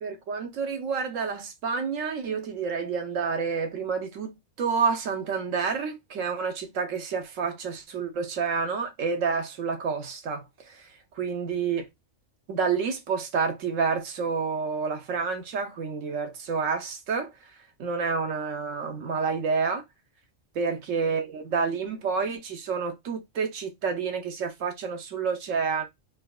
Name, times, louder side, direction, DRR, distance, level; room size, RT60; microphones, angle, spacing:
voice 1, 0.0-11.9 12.5-17.3 17.8-19.8 20.5-25.8, right 5 dB, 85° right, 1.2 m, -29 dB
3.9 x 2.1 x 2.3 m
omnidirectional pair, 1.3 m